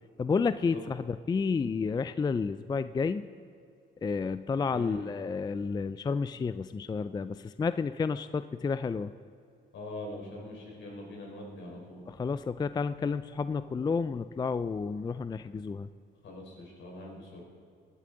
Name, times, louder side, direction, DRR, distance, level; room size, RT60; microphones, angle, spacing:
voice 1, 0.2-3.3 4.0-9.1 12.1-15.9, left 5 dB, 20° left, 13 dB, 0.3 m, -31 dB
voice 2, 4.7-5.1 9.7-12.0 16.2-17.4, left 2 dB, 70° left, -1 dB, 4.0 m, -43 dB
18.0 x 11.5 x 3.9 m, 2.4 s
cardioid pair, 90°, 20 cm